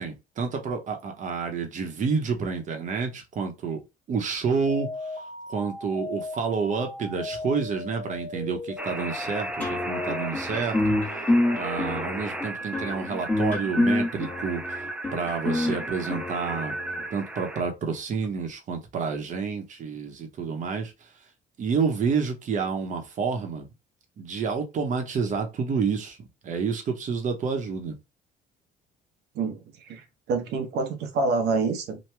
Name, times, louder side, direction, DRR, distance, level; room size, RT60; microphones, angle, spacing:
voice 1, 0.0-3.8 4.1-5.1 5.5-11.0 11.5-14.8 15.1-16.8 17.1-20.9 21.6-23.7 24.2-27.9, right 5 dB, 50° right, 0.9 m, -29 dB
sound 1, 4.7-10.3 10.7-12.2, left 3 dB, 70° left, 1.2 m, -37 dB
sound 2, 8.8-17.6, right 2 dB, 5° right, 0.3 m, -35 dB
sound 3, 9.6-17.0, left 1 dB, 10° left, 1.2 m, -27 dB
voice 2, 29.8-32.0, right 4 dB, 80° right, 0.9 m, -27 dB
3.0 x 2.2 x 3.3 m
cardioid pair, 110°, 17 cm